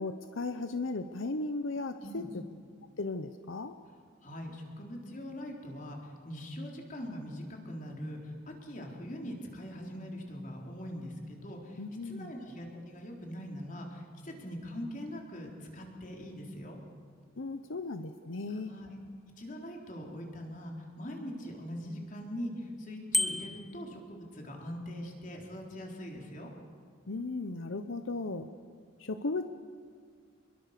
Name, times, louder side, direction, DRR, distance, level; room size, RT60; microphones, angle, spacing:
voice 1, 0.0-2.4 3.0-3.7 11.8-12.3 17.4-18.7 27.1-28.5 29.0-29.5, left 3 dB, 80° left, 9 dB, 0.9 m, -36 dB
voice 2, 4.2-16.8 18.5-19.0 19.4-26.5, equal, 40° left, 1 dB, 3.9 m, -42 dB
Bicycle bell, 23.1-23.8, left 1 dB, ahead, 0.9 m, -30 dB
26.5 x 22.0 x 6.8 m, 2.1 s
head